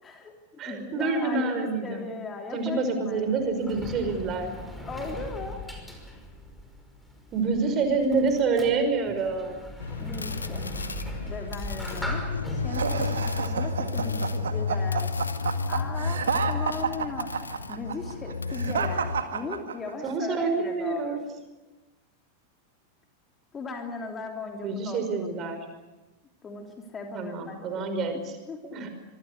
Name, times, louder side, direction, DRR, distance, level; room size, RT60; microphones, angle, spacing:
voice 1, 0.0-3.5 4.9-5.7 10.0-10.7 11.2-12.2 12.5-15.3 15.7-17.3 17.7-21.2 23.5-25.0 26.4-27.9 28.5-28.6, left 3 dB, 20° left, 3 dB, 3.3 m, -38 dB
voice 2, 0.6-2.1 2.5-4.5 7.3-9.6 20.0-21.2 24.6-25.7 27.1-28.4 28.6-28.9, right 4 dB, 30° right, 7 dB, 5.5 m, -27 dB
Sliding door, 3.1-14.5, equal, 5° left, 5.5 m, -40 dB
sound 1, 9.8-19.2, left 4 dB, 75° left, 1.3 m, -31 dB
sound 2, 12.7-20.1, right 6 dB, 65° right, 2.0 m, -30 dB
25.5 x 24.5 x 6.9 m, 1.1 s
figure-of-eight pair, 90°, 0 cm